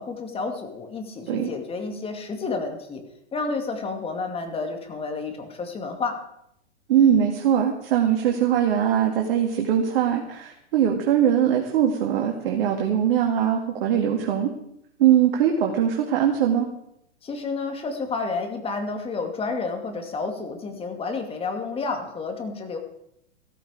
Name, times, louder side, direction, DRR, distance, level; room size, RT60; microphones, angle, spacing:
voice 1, 0.0-3.0 3.3-6.2 17.2-22.8, left 4 dB, 15° left, 4 dB, 2.3 m, -30 dB
voice 2, 6.9-14.5 15.0-16.7, right 9 dB, 50° right, 1 dB, 2.2 m, -21 dB
15.0 x 14.0 x 5.0 m, 0.76 s
hypercardioid pair, 120°, 35 cm